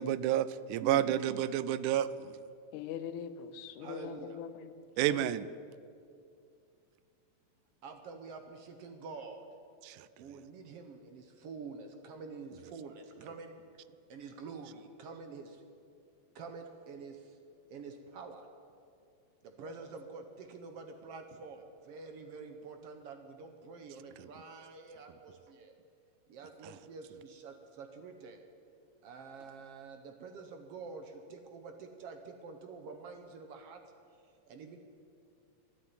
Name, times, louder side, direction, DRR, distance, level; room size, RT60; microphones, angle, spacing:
voice 1, 0.0-2.3 5.0-5.5 9.8-10.0, right 11 dB, 90° right, 2.0 m, -30 dB
voice 2, 0.8-1.2 3.8-4.4 7.8-9.5 10.2-13.5 14.1-15.6 16.3-17.4 17.7-18.5 19.4-25.7 26.3-28.4 29.0-33.8 34.5-34.8, right 4 dB, 65° right, 1.6 m, -47 dB
voice 3, 2.7-5.3, left 8 dB, 80° left, 2.1 m, -43 dB
12.0 x 11.0 x 9.3 m
omnidirectional pair, 3.5 m